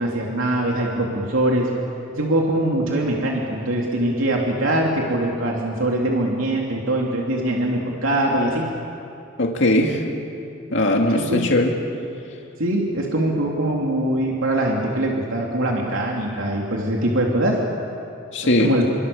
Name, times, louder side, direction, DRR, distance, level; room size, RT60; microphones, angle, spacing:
voice 1, 0.0-1.7 2.1-8.6 11.1-11.5 12.6-17.5 18.6-18.8, right 1 dB, 90° right, -2 dB, 3.0 m, -22 dB
voice 2, 9.4-10.0 10.7-11.7 18.3-18.7, left 1 dB, 65° left, 1 dB, 2.3 m, -19 dB
30.0 x 23.5 x 7.1 m, 2.7 s
head